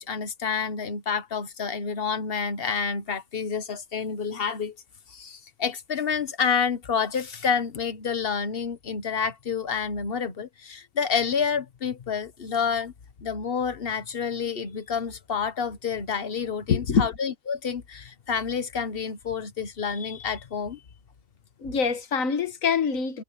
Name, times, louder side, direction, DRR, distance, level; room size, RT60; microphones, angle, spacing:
voice 1, 0.0-4.7 5.1-12.9 13.2-20.8, left 6 dB, 45° left, 1.3 m, -29 dB
voice 2, 16.7-17.1 21.6-23.2, left 6 dB, 80° left, 1.7 m, -24 dB
omnidirectional pair, 1.4 m